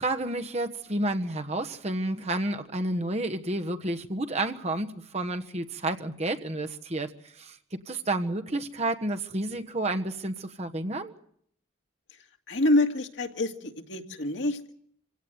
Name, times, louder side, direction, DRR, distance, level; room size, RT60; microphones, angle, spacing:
voice 1, 0.0-11.1, right 2 dB, 35° right, 1.3 m, -30 dB
voice 2, 12.5-14.7, left 2 dB, 70° left, 2.3 m, -26 dB
26.5 x 17.0 x 7.9 m
head